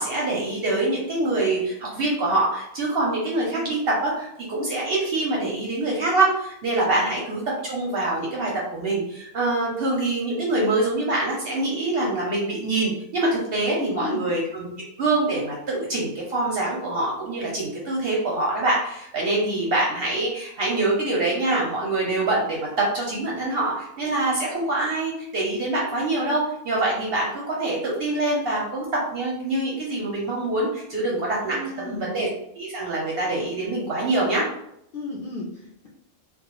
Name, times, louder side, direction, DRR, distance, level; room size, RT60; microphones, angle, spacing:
voice 1, 0.0-14.7 15.0-32.3 32.5-34.5, right 2 dB, 60° right, -3 dB, 0.6 m, -25 dB
voice 2, 3.4-3.7 6.9-7.1 13.7-14.3 19.5-19.7 31.4-32.1 34.9-35.9, left 2 dB, 65° left, -4 dB, 0.5 m, -34 dB
2.3 x 2.1 x 2.9 m, 0.77 s
omnidirectional pair, 1.4 m